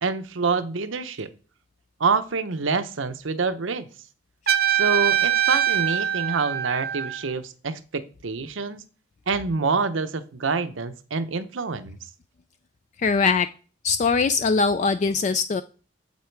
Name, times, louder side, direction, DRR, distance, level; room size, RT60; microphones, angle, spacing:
voice 1, 0.0-1.3 2.0-3.9 4.7-8.8 9.3-12.0, right 4 dB, 85° right, 11 dB, 0.8 m, -26 dB
Trumpet, 4.5-7.3, right 11 dB, 50° right, 0.7 m, -23 dB
voice 2, 13.0-13.5 13.8-15.6, left 4 dB, 40° left, 11 dB, 0.3 m, -21 dB
8.2 x 7.4 x 4.6 m, 0.38 s
head